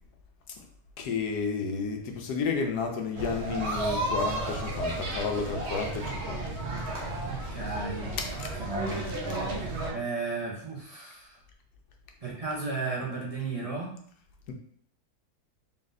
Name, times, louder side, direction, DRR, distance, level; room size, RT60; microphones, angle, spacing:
voice 1, 1.0-6.4 8.2-8.5, left 5 dB, 90° left, 3 dB, 1.3 m, -31 dB
sound 1, 3.2-9.9, right 2 dB, 50° right, 1.1 m, -33 dB
voice 2, 7.3-9.1 9.9-11.4 12.2-14.0, right 3 dB, 30° right, -4 dB, 0.8 m, -35 dB
4.0 x 2.6 x 4.0 m, 0.62 s
omnidirectional pair, 1.6 m